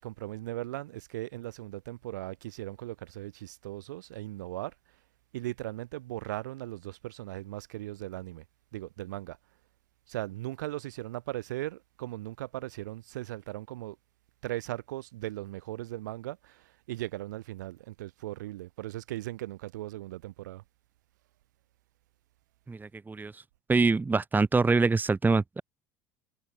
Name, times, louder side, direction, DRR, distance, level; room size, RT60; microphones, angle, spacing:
voice 1, 0.0-4.7 5.3-8.4 8.7-9.4 10.1-14.0 14.4-20.6, right 16 dB, 75° right, 5.1 m, -38 dB
voice 2, 22.7-23.3 23.7-25.6, right 4 dB, 20° right, 1.6 m, -25 dB
figure-of-eight pair, 65°, 10 cm